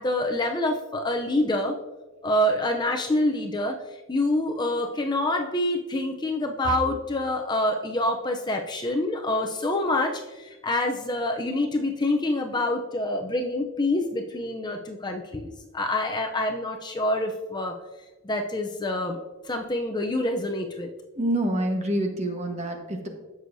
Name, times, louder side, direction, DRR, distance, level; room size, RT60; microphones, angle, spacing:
voice 1, 0.0-1.7 2.2-3.7 4.1-17.8 18.2-19.2 19.4-20.9, left 1 dB, 20° left, 3 dB, 0.5 m, -26 dB
voice 2, 21.2-23.1, right 1 dB, 30° right, 3 dB, 1.3 m, -27 dB
15.5 x 6.3 x 2.7 m, 1.2 s
head